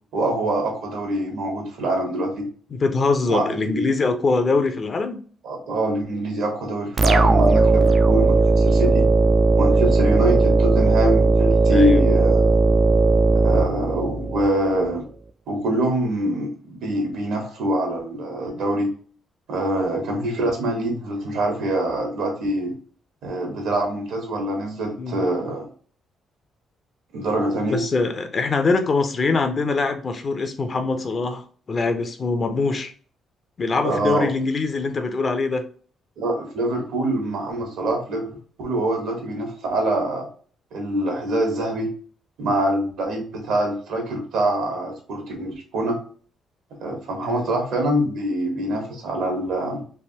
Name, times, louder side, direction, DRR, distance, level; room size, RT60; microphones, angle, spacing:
voice 1, 0.1-2.5 3.3-3.9 5.4-9.1 9.6-12.6 13.4-15.0 15.5-18.9 19.5-22.7 23.2-25.7 27.1-27.8 33.8-34.3 36.2-38.3 38.6-40.3 40.7-41.9 42.4-46.0 46.8-49.8, right 1 dB, 80° right, 2 dB, 1.3 m, -24 dB
voice 2, 2.7-5.2 11.6-12.0 25.0-25.2 27.7-32.9 33.6-35.6 47.2-47.6, left 3 dB, 40° left, 7 dB, 0.6 m, -23 dB
sound 1, 7.0-14.5, right 3 dB, 35° right, 0.3 m, -17 dB
3.3 x 2.6 x 2.8 m, 0.43 s
cardioid pair, 90°, 0 cm